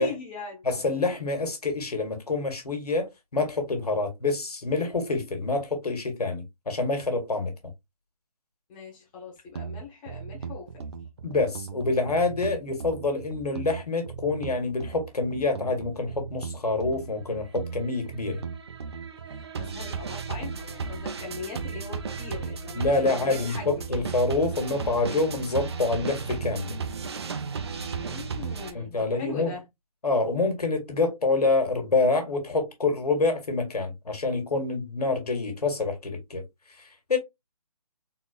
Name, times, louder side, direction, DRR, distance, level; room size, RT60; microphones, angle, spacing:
voice 1, 0.0-0.6 8.7-10.8 19.3-24.0 28.0-29.7, left 4 dB, 15° left, 1.0 m, -40 dB
voice 2, 0.6-7.5 11.2-18.4 22.7-26.8 28.7-29.5 30.0-36.4 36.8-37.2, left 3 dB, 85° left, 1.6 m, -27 dB
sound 1, 9.5-28.7, right 5 dB, 45° right, 0.5 m, -35 dB
3.9 x 2.6 x 2.4 m
hypercardioid pair, 165°, 19 cm